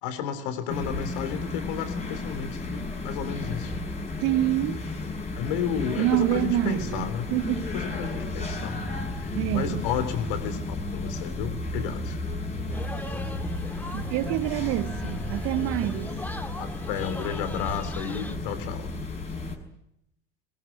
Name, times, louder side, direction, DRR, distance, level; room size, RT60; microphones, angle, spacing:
voice 1, 0.0-3.7 5.4-7.3 7.7-8.8 9.1-12.2 16.6-18.9, left 8 dB, 55° left, 3.7 m, -32 dB
sound 1, 0.7-19.6, left 2 dB, 20° left, 6.3 m, -33 dB
voice 2, 4.2-4.9 6.0-7.7 9.3-9.8 13.9-16.2, right 15 dB, 45° right, 0.9 m, -27 dB
sound 2, 12.7-18.3, left 1 dB, 5° left, 2.2 m, -41 dB
sound 3, 13.7-15.6 16.0-19.1, left 1 dB, 80° right, 6.0 m, -45 dB
22.0 x 22.0 x 9.5 m
figure-of-eight pair, 75°, 31 cm